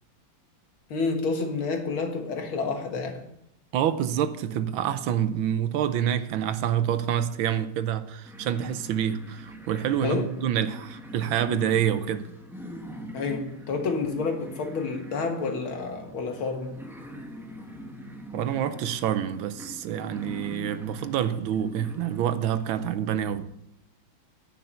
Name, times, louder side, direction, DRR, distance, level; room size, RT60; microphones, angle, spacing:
voice 1, 0.9-3.3 10.0-10.3 13.1-16.8, left 4 dB, 80° left, 2.3 m, -29 dB
voice 2, 3.7-12.3 18.3-23.5, right 9 dB, 80° right, 1.5 m, -27 dB
sound 1, 8.2-22.2, equal, 5° right, 0.4 m, -43 dB
10.5 x 5.7 x 8.6 m
omnidirectional pair, 2.3 m